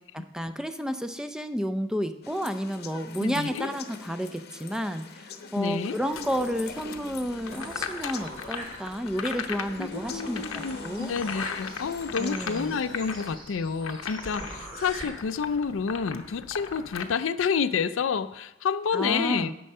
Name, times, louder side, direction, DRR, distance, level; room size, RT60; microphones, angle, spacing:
voice 1, 0.3-10.5 10.8-11.1 12.2-12.7 18.9-19.5, equal, 5° right, 9 dB, 0.4 m, -31 dB
sound 1, 2.2-13.4, left 4 dB, 50° left, 0.8 m, -43 dB
voice 2, 3.2-3.7 5.6-6.0 9.8-19.5, left 6 dB, 70° left, 13 dB, 0.4 m, -29 dB
sound 2, 6.1-17.0, left 6 dB, 85° left, 0.8 m, -39 dB
sound 3, 7.5-9.2 9.6-9.7 9.9-15.0, right 1 dB, 25° right, 2.7 m, -43 dB
10.0 x 7.7 x 5.4 m, 0.96 s
head